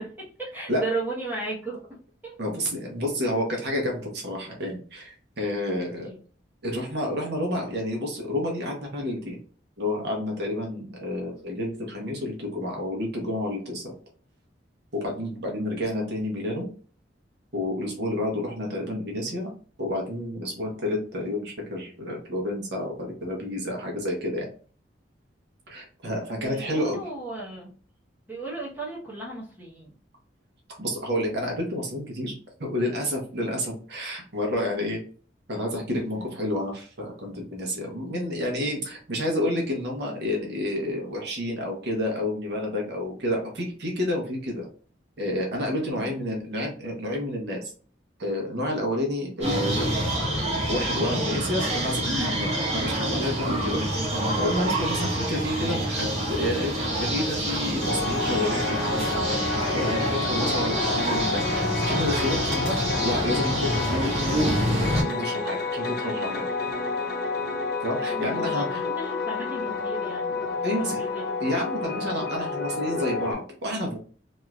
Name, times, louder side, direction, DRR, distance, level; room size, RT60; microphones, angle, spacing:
voice 1, 0.0-1.8 2.2-2.3 6.0-6.2 26.3-27.7 28.3-29.9 36.1-36.4 45.9-46.1 68.1-70.4 70.7-71.3, right 2 dB, 10° right, -5 dB, 1.0 m, -35 dB
voice 2, 2.4-6.1 6.6-9.4 9.8-13.8 14.9-16.7 17.5-19.5 19.8-24.5 25.7-27.1 30.8-32.3 32.6-35.0 35.5-44.7 45.2-47.7 48.2-54.0 54.4-58.8 59.7-64.0 65.0-66.5 67.8-68.8 70.3-70.4 70.6-71.0 71.4-74.0, left 1 dB, 60° right, 0 dB, 1.0 m, -29 dB
sound 1, 49.4-65.0, right 1 dB, 35° right, 1.0 m, -27 dB
sound 2, 57.8-73.3, left 4 dB, 60° left, 0.6 m, -30 dB
3.0 x 2.7 x 2.3 m, 0.42 s
head